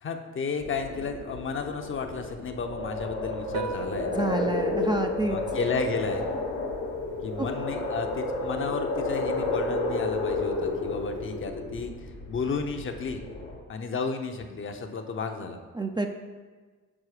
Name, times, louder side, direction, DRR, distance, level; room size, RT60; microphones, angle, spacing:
voice 1, 0.0-4.5 5.2-6.3 7.2-13.2 13.7-15.6, left 4 dB, 40° left, 5 dB, 0.7 m, -33 dB
sound 1, 0.6-13.6, left 2 dB, 85° left, 1.2 m, -31 dB
Piano, 3.4-11.4, right 9 dB, 90° right, 0.5 m, -45 dB
voice 2, 4.1-5.4 15.8-16.1, right 3 dB, 15° right, 4 dB, 0.4 m, -28 dB
6.2 x 4.7 x 4.9 m, 1.4 s
cardioid pair, 90°, 30 cm